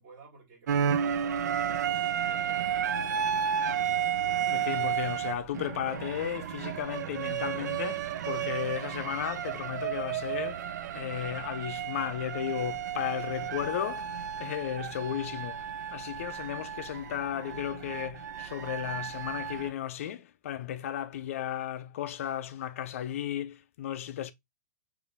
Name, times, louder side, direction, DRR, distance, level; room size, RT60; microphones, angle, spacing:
voice 1, 0.0-2.6, right 4 dB, 30° right, 1.9 m, -54 dB
sound 1, 0.7-19.7, right 8 dB, 65° right, 0.5 m, -32 dB
voice 2, 4.5-10.7 10.9-14.1 14.4-15.7 15.9-24.3, left 10 dB, 45° left, 0.4 m, -34 dB
4.3 x 2.6 x 3.3 m
hypercardioid pair, 170°, 10 cm